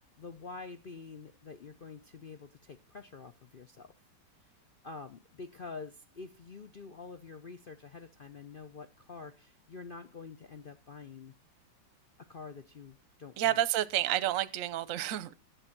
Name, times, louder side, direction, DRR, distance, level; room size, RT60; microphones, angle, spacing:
voice 1, 0.0-3.9 4.8-11.3 12.3-13.6, left 4 dB, 70° left, 0.5 m, -47 dB
voice 2, 13.4-15.3, right 13 dB, 55° right, 1.0 m, -30 dB
11.5 x 8.1 x 5.9 m
omnidirectional pair, 2.0 m